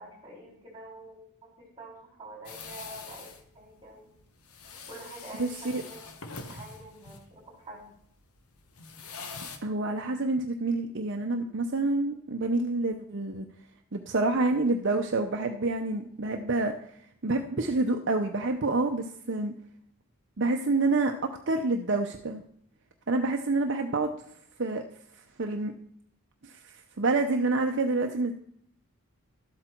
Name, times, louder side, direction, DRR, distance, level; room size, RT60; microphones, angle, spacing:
voice 1, 0.0-4.1 4.9-6.0 6.4-7.9, right 1 dB, 20° right, -1 dB, 4.2 m, -47 dB
sound 1, 2.5-9.6, left 4 dB, 80° left, 1.2 m, -44 dB
voice 2, 5.4-5.8 9.6-13.5 13.9-16.7 17.2-19.5 20.4-22.4 23.1-24.1 24.6-24.8 25.2-25.7 26.4-28.3, right 2 dB, 55° right, 4 dB, 0.7 m, -28 dB
12.5 x 8.0 x 4.5 m, 0.66 s
head